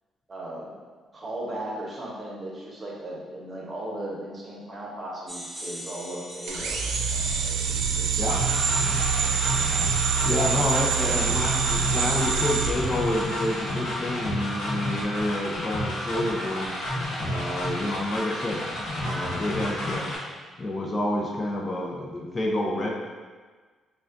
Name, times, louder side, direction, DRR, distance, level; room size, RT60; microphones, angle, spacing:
voice 1, 0.3-0.7 1.1-8.4 8.9-9.4 10.9-11.2, right 1 dB, 35° right, -4 dB, 0.9 m, -37 dB
sound 1, 5.3-11.0 12.0-12.2, equal, 5° left, 1.1 m, -41 dB
sound 2, 6.5-13.6, right 6 dB, 90° right, 0.3 m, -26 dB
sound 3, 8.3-20.2, left 1 dB, 80° left, 0.9 m, -31 dB
voice 2, 10.2-16.7 17.2-18.6 19.0-20.2 20.6-22.9, left 1 dB, 30° left, -2 dB, 0.5 m, -28 dB
4.7 x 2.3 x 2.5 m, 1.4 s
cardioid pair, 90°, 0 cm